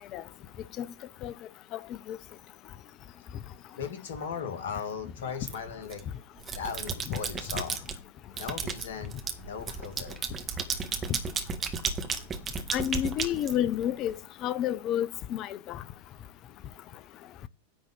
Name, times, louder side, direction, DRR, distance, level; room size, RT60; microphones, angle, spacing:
voice 1, 3.8-6.0 6.5-7.8 8.3-10.3, left 6 dB, 60° left, 2.1 m, -37 dB
sound 1, 5.5-6.0 6.4-8.0 8.4-14.1, right 5 dB, 20° right, 1.6 m, -33 dB
voice 2, 12.7-14.1 14.4-15.8, left 11 dB, 35° left, 0.7 m, -30 dB
10.0 x 4.1 x 7.6 m
figure-of-eight pair, 90°, 0 cm